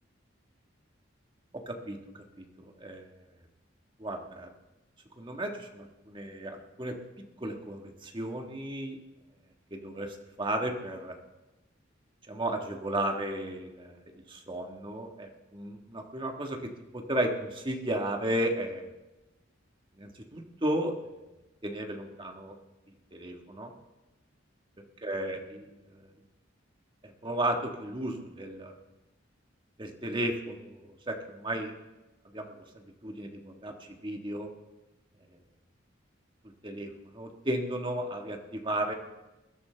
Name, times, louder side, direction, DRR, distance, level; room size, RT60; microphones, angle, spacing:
voice 1, 1.7-3.1 4.0-4.5 5.2-7.0 7.4-9.0 9.7-11.2 12.3-14.0 14.3-18.9 20.0-20.9 21.6-22.5 23.1-23.7 25.0-26.1 27.0-28.7 29.8-31.7 32.2-33.7 34.0-34.5 36.6-38.9, right 1 dB, 25° right, 3 dB, 1.5 m, -34 dB
21.5 x 12.5 x 3.4 m, 1.0 s
head